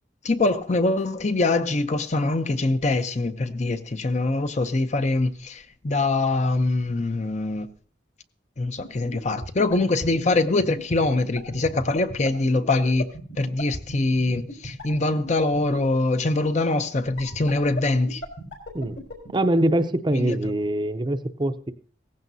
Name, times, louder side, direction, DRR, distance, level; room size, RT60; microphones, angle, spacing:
voice 1, 0.2-7.7 8.6-13.1 13.4-18.2 20.1-20.4, left 2 dB, 40° left, 0.6 m, -23 dB
sound 1, 8.8-15.9 17.2-19.3, left 1 dB, 70° left, 3.8 m, -34 dB
voice 2, 19.3-21.7, right 1 dB, 25° right, 0.6 m, -23 dB
17.0 x 15.0 x 2.7 m
head